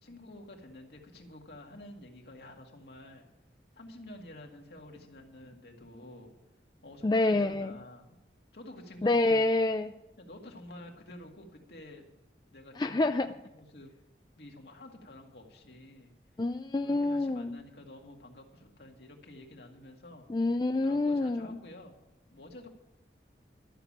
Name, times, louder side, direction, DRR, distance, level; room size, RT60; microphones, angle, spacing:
voice 1, 0.0-3.3 3.7-6.3 6.8-8.2 8.5-9.4 10.2-12.0 12.5-13.9 14.4-16.1 16.7-20.3 20.8-22.0 22.3-22.7, left 1 dB, 70° left, 2 dB, 2.1 m, -49 dB
voice 2, 7.0-7.7 9.0-9.9 12.8-13.3 16.4-17.6 20.3-21.6, left 2 dB, 25° left, 8 dB, 0.3 m, -27 dB
12.5 x 7.0 x 8.7 m, 0.92 s
head